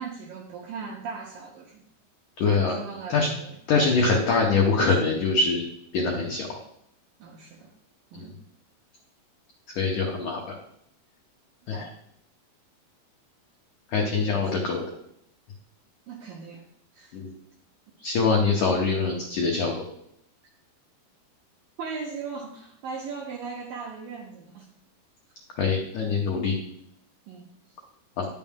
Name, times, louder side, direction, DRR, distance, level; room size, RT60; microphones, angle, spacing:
voice 1, 0.0-1.8 2.4-3.6 7.2-7.7 8.1-8.4 11.7-11.9 14.0-14.5 16.1-16.6 16.9-17.2 21.8-24.7 27.3-27.5, right 5 dB, 80° right, 1 dB, 2.0 m, -38 dB
voice 2, 2.4-2.8 3.1-3.3 3.7-5.6 5.9-6.6 8.1-8.3 9.7-10.6 11.7-11.9 13.9-14.8 17.1-17.3 18.0-19.7 25.6-26.6 28.2-28.3, left 4 dB, 85° left, 0 dB, 1.7 m, -24 dB
10.0 x 6.3 x 3.6 m, 0.75 s
omnidirectional pair, 5.0 m